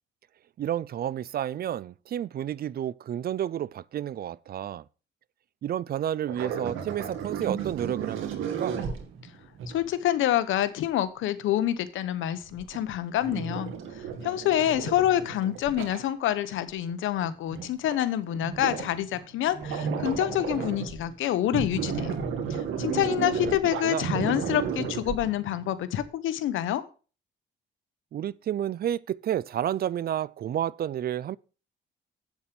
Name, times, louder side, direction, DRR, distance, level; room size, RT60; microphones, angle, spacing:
voice 1, 0.6-4.8 5.6-8.8 23.8-24.1 28.1-31.4, right 10 dB, 50° right, 0.4 m, -31 dB
sound 1, 6.3-9.8 12.5-16.0 16.9-17.0 17.2-17.7 17.9-18.0 18.3-19.2 19.5-21.1 21.4-25.6 26.0-26.1, right 6 dB, 85° right, 2.1 m, -33 dB
voice 2, 9.7-13.7 14.2-22.1 22.5-26.8, left 12 dB, 80° left, 1.1 m, -27 dB
8.4 x 7.2 x 5.9 m
cardioid pair, 90°, 20 cm